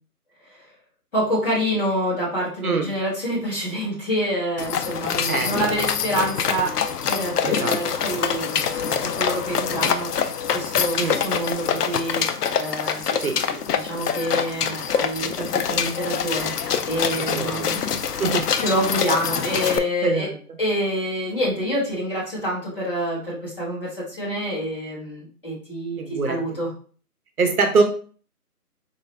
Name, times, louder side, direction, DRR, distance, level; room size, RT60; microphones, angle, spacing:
voice 1, 1.1-10.2 10.5-12.2 12.6-17.8 18.6-20.3 20.6-26.7, equal, 35° left, -6 dB, 1.6 m, -27 dB
sound 1, 4.6-19.8, left 7 dB, 75° left, 0.5 m, -25 dB
voice 2, 7.4-7.8 11.0-11.2 13.2-13.4 17.3-17.6 18.2-18.4 20.0-20.3 26.0-26.4 27.4-27.8, right 4 dB, 65° right, 5 dB, 0.8 m, -23 dB
3.9 x 2.2 x 3.1 m, 0.41 s
hypercardioid pair, 175°, 47 cm